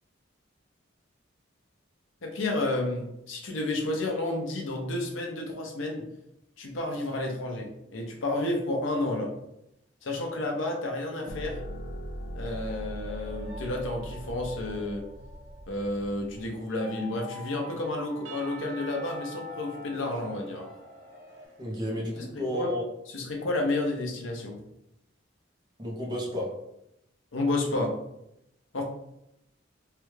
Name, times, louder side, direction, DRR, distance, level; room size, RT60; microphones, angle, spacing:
voice 1, 2.2-6.0 6.6-9.3 10.0-11.6 12.4-15.0 15.7-20.7 22.2-22.3 22.5-22.7 23.1-24.6 27.3-27.9 28.7-28.8, left 2 dB, 90° left, 1 dB, 0.7 m, -31 dB
sound 1, 11.3-16.5, equal, 50° left, 0.4 m, -40 dB
sound 2, 13.0-21.5, left 3 dB, 55° right, 0.8 m, -46 dB
Percussion / Church bell, 18.2-22.4, right 5 dB, 80° right, 0.6 m, -48 dB
voice 2, 21.6-22.8 25.8-26.5, equal, 20° right, -3 dB, 0.8 m, -32 dB
3.3 x 2.3 x 3.1 m, 0.82 s
head